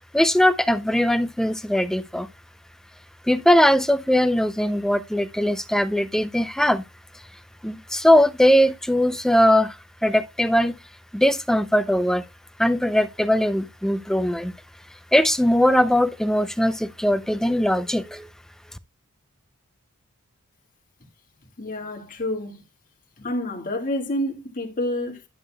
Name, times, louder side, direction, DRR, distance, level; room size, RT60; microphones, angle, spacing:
voice 1, 0.1-2.3 3.3-6.8 7.6-9.8 10.0-10.8 11.1-12.2 12.6-14.5 15.1-18.3, equal, ahead, 0.4 m, -20 dB
voice 2, 21.6-22.6 23.2-25.3, left 1 dB, 40° left, 1.8 m, -28 dB
11.0 x 6.6 x 2.2 m
head